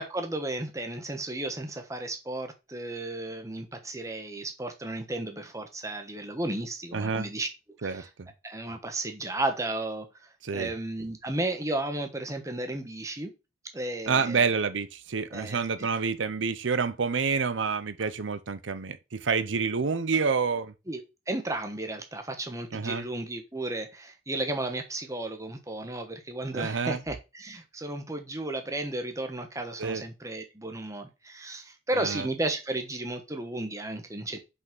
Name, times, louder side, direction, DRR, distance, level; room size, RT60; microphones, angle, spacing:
voice 1, 0.0-7.5 7.8-8.0 8.4-10.1 10.5-13.3 13.7-14.4 15.3-15.9 20.9-21.0 21.3-34.4, right 2 dB, 15° right, 1.2 m, -34 dB
voice 2, 6.9-7.3 7.8-8.3 10.4-10.7 14.0-20.7 22.7-23.0 26.5-27.0 29.8-30.0 31.9-32.3, right 5 dB, 80° right, 0.7 m, -28 dB
5.6 x 5.6 x 6.0 m
head